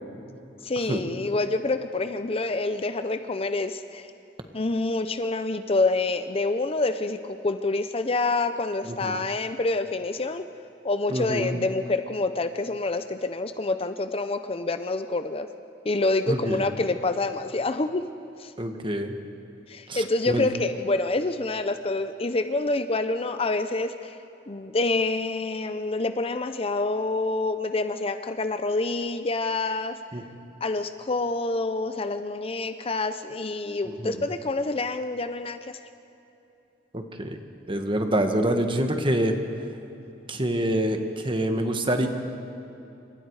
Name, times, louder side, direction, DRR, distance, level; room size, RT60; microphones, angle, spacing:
voice 1, 0.6-4.1 4.5-10.5 10.8-15.5 15.8-18.0 18.4-18.5 19.7-24.2 24.5-29.9 30.6-35.8, left 2 dB, 35° left, 10 dB, 0.7 m, -27 dB
voice 2, 11.1-11.6 16.3-16.7 18.6-19.1 19.9-20.5 30.1-30.2 33.8-34.3 36.9-37.4 37.7-39.4 40.3-42.1, right 1 dB, 30° right, 5 dB, 1.7 m, -26 dB
28.0 x 26.0 x 4.9 m, 2.9 s
head